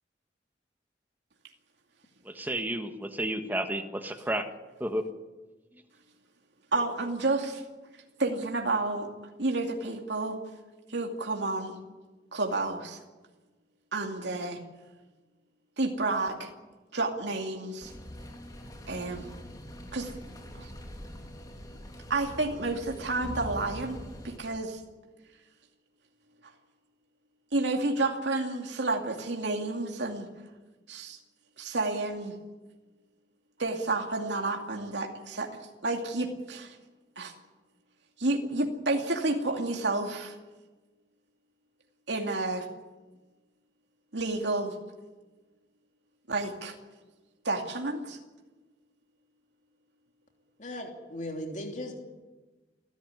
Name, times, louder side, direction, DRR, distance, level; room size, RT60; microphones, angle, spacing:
voice 1, 2.2-4.5 4.8-5.0, right 1 dB, 10° right, 6 dB, 1.5 m, -31 dB
voice 2, 6.7-7.6 8.2-9.1 9.4-10.4 10.9-11.8 12.3-13.0 13.9-14.6 15.8-16.5 16.9-17.9 18.9-19.3 19.9-20.1 20.5-20.7 22.1-24.0 24.2-24.8 27.5-30.3 30.9-31.2 31.6-32.3 33.6-35.5 35.8-36.8 37.2-37.3 38.2-40.4 42.1-42.7 44.1-44.7 46.3-46.7 47.4-48.2, right 2 dB, 85° right, 2 dB, 2.4 m, -30 dB
sound 1, 17.8-24.4, equal, 20° left, 2.8 m, -43 dB
voice 3, 50.6-52.1, left 1 dB, 45° left, 2 dB, 3.0 m, -37 dB
29.5 x 12.5 x 9.7 m, 1.2 s
head